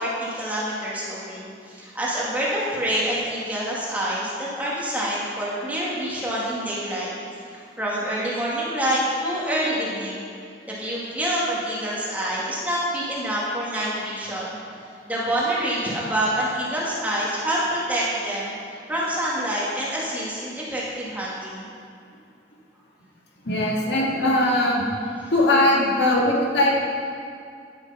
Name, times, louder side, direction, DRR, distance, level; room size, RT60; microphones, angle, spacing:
voice 1, 0.0-7.1 7.5-10.3 10.7-14.6 15.1-18.5 18.9-21.6, right 1 dB, 10° right, -7 dB, 2.2 m, -26 dB
voice 2, 23.4-24.8 25.3-26.9, left 1 dB, 80° left, -3 dB, 2.1 m, -20 dB
10.5 x 7.9 x 5.7 m, 2.3 s
head